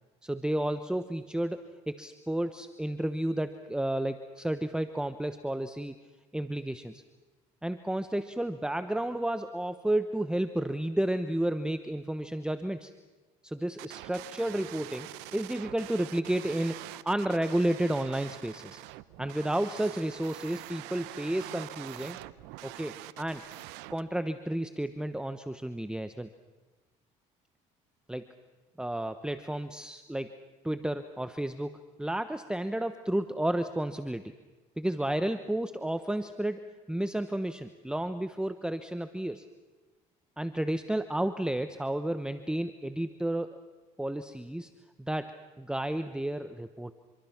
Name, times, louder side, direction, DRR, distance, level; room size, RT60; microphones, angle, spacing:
voice 1, 0.2-6.0 6.3-7.0 7.6-12.9 13.4-18.8 19.2-22.2 22.6-23.4 23.9-26.3 28.1-28.3 28.8-30.3 30.6-34.3 34.8-39.5 40.4-43.6 44.0-44.7 45.0-46.9, right 1 dB, 5° right, 10 dB, 1.1 m, -32 dB
sound 1, 13.8-24.0, right 18 dB, 80° right, 0.8 m, -45 dB
26.5 x 24.5 x 6.0 m, 1.2 s
supercardioid pair, 75°, 17 cm